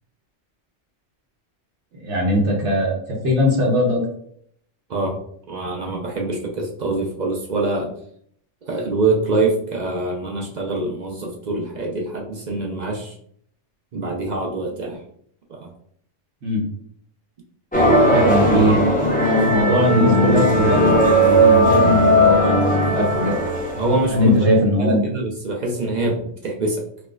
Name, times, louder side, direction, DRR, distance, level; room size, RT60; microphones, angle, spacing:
voice 1, 1.9-3.0 3.2-4.0 16.4-16.6 18.1-18.9 19.4-20.9 21.2-23.4 24.1-25.0, equal, 70° right, -2 dB, 1.1 m, -20 dB
voice 2, 5.5-7.9 8.7-13.1 13.9-15.0 15.5-15.7 23.8-24.5 24.8-26.8, right 2 dB, 55° right, 0 dB, 0.5 m, -24 dB
sound 1, 17.7-24.3, equal, 10° left, 0.5 m, -17 dB
4.4 x 2.1 x 2.3 m, 0.65 s
omnidirectional pair, 1.2 m